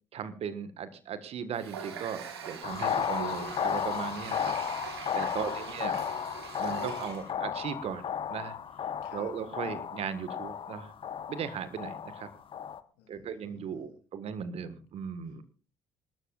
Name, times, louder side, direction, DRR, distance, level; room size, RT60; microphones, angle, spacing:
voice 1, 0.1-4.5 5.1-6.0 6.6-8.0 8.3-8.5 9.1-10.9 11.3-12.3 13.1-15.4, right 7 dB, 50° right, 12 dB, 1.6 m, -37 dB
Water tap faucet, 1.5-7.3, right 7 dB, 80° right, 1.7 m, -42 dB
sound 1, 2.6-12.8, left 8 dB, 45° left, 1.1 m, -34 dB
voice 2, 5.3-6.3 9.0-9.3 12.9-14.0 15.3-15.4, left 8 dB, 70° left, 3 dB, 3.2 m, -56 dB
26.5 x 13.0 x 2.5 m, 0.37 s
figure-of-eight pair, 50°, 13 cm